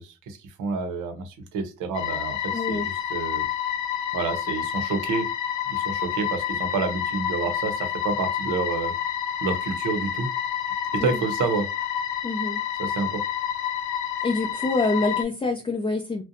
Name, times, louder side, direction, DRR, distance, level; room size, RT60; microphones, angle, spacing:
voice 1, 0.0-3.5 4.1-5.3 5.7-8.9 9.4-10.3 10.9-11.7 12.8-13.2, right 4 dB, 80° right, 7 dB, 0.7 m, -29 dB
sound 1, 1.9-15.2, left 9 dB, 70° left, 0.6 m, -29 dB
voice 2, 2.5-2.9 11.0-11.2 12.2-12.6 14.2-16.2, left 3 dB, 15° left, 2 dB, 0.4 m, -26 dB
2.6 x 2.1 x 2.5 m, 0.28 s
cardioid pair, 90°, 30 cm